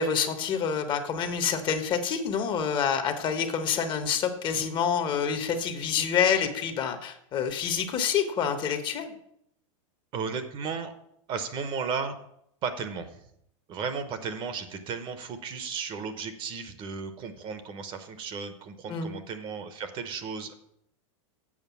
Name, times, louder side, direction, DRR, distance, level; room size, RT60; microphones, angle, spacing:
voice 1, 0.0-9.1 18.9-19.1, left 7 dB, 30° left, 8 dB, 0.8 m, -27 dB
voice 2, 10.1-10.9 11.3-12.2 12.6-13.2 13.7-20.6, right 5 dB, 30° right, 10 dB, 0.8 m, -34 dB
7.3 x 5.1 x 7.0 m, 0.74 s
supercardioid pair, 150°, 17 cm